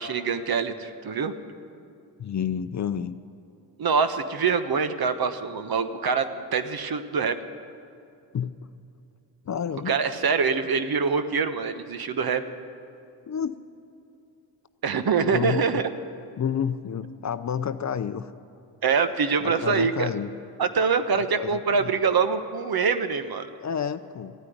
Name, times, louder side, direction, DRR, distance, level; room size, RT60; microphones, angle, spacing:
voice 1, 0.0-1.3 3.8-7.4 9.9-12.4 14.8-15.9 18.8-20.1 20.6-23.5, right 5 dB, 50° right, 11 dB, 1.2 m, -24 dB
voice 2, 2.2-3.2 8.3-8.5 9.5-10.0 13.3-13.6 15.3-15.8 16.4-18.3 19.4-20.3 21.1-21.9 23.6-24.3, left 8 dB, 35° left, 12 dB, 0.7 m, -30 dB
14.5 x 9.6 x 9.5 m, 2.6 s
supercardioid pair, 55°, 48 cm